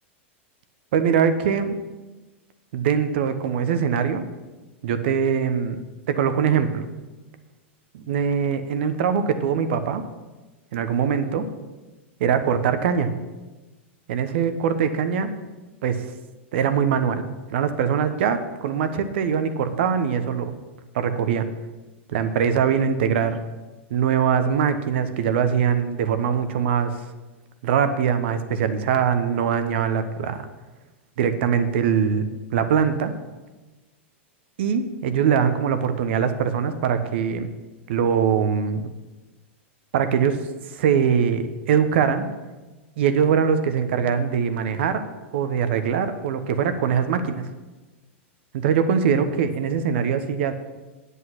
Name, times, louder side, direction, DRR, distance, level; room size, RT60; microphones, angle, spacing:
voice 1, 0.9-1.8 2.7-4.2 4.8-5.8 6.1-6.9 7.9-10.0 10.7-11.5 12.2-13.1 14.1-15.3 15.8-16.0 16.5-17.2 17.5-20.6 20.9-21.5 22.1-23.4 23.9-27.0 27.6-30.4 31.2-33.1 34.6-37.5 37.9-38.8 39.9-40.4 40.7-42.3 43.0-45.0 45.3-47.4 48.5-50.5, right 7 dB, 65° right, 10 dB, 1.1 m, -22 dB
9.4 x 8.4 x 5.9 m, 1.2 s
hypercardioid pair, 100°, 7 cm